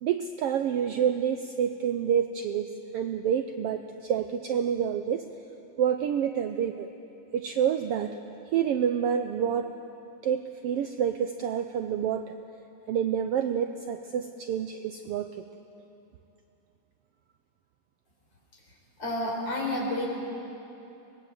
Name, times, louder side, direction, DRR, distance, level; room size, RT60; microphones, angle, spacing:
voice 1, 0.0-5.3 5.8-6.9 7.3-8.2 8.5-9.7 10.2-12.3 12.9-15.4, right 8 dB, 85° right, 7 dB, 1.3 m, -28 dB
voice 2, 19.0-20.1, left 1 dB, 50° left, -2 dB, 5.5 m, -29 dB
24.5 x 20.0 x 7.8 m, 2.9 s
omnidirectional pair, 3.5 m